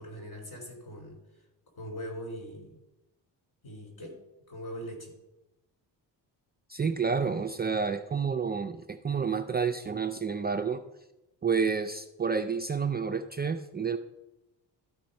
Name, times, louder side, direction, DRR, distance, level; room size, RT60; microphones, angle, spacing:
voice 1, 0.0-1.4 1.8-2.8 3.6-4.2 4.5-5.1, equal, 55° left, 2 dB, 3.7 m, -41 dB
voice 2, 6.7-10.8 11.4-14.0, right 5 dB, 25° right, 4 dB, 0.4 m, -29 dB
12.5 x 4.4 x 5.3 m, 0.97 s
cardioid pair, 100°, 44 cm